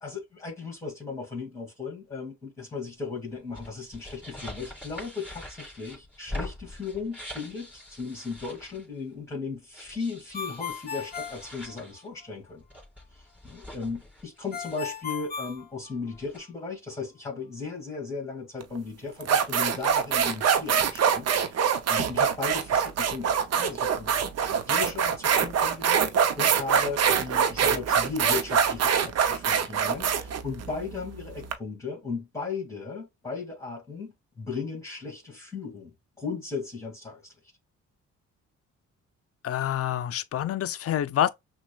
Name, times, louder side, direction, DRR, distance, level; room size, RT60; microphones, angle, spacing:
voice 1, 0.0-12.6 13.1-37.3, left 4 dB, 10° left, 2.3 m, -36 dB
sound 1, 3.3-9.0 9.7-12.1 12.5-15.2 15.5-15.6 15.9-16.4, left 1 dB, 5° right, 2.5 m, -43 dB
Ringtone, 10.3-12.3 14.5-16.4, left 7 dB, 30° left, 0.9 m, -37 dB
sound 2, 18.6-18.8 19.2-31.5, right 7 dB, 55° right, 0.7 m, -24 dB
voice 2, 39.4-41.3, left 11 dB, 50° left, 0.5 m, -27 dB
6.0 x 2.3 x 2.3 m
cardioid pair, 90°, 30 cm